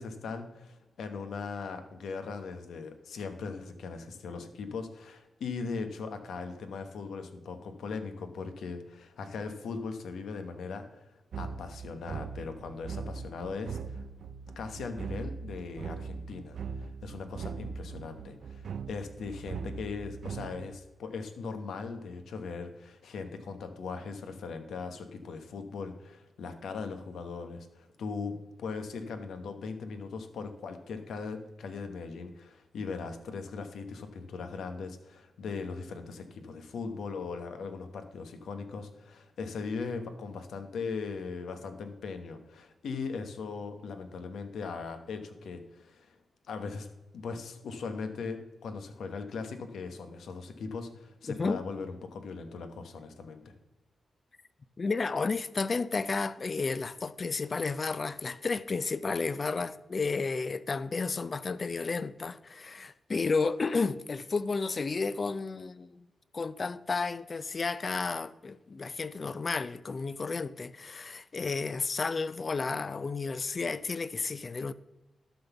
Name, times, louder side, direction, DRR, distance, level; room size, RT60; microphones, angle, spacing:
voice 1, 0.0-11.0 11.3-14.0 14.6-46.1 46.5-46.9 47.1-53.5, left 4 dB, 85° left, 1.0 m, -39 dB
sound 1, 11.3-20.8, right 5 dB, 70° right, 0.3 m, -40 dB
voice 2, 54.8-66.1 66.3-74.7, left 4 dB, 40° left, 0.4 m, -32 dB
11.5 x 4.0 x 7.0 m
cardioid pair, 95°, 0 cm